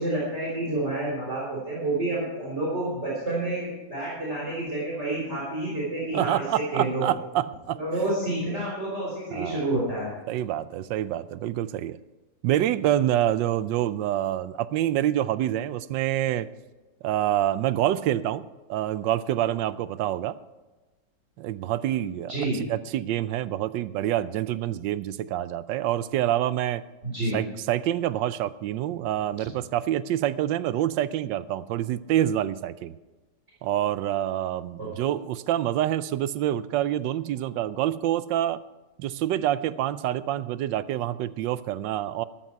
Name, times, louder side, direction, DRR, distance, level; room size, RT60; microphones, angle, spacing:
voice 1, 0.0-7.1 7.8-10.1 22.3-22.6 27.0-27.4 34.8-35.1, right 2 dB, 35° right, -6 dB, 4.2 m, -29 dB
voice 2, 6.1-7.8 9.3-9.6 10.3-12.0 12.4-16.5 17.0-20.4 21.4-26.8 27.3-32.9 33.6-38.6 39.0-42.2, right 12 dB, 85° right, 16 dB, 1.3 m, -27 dB
14.0 x 13.0 x 4.6 m, 1.2 s
omnidirectional pair, 1.9 m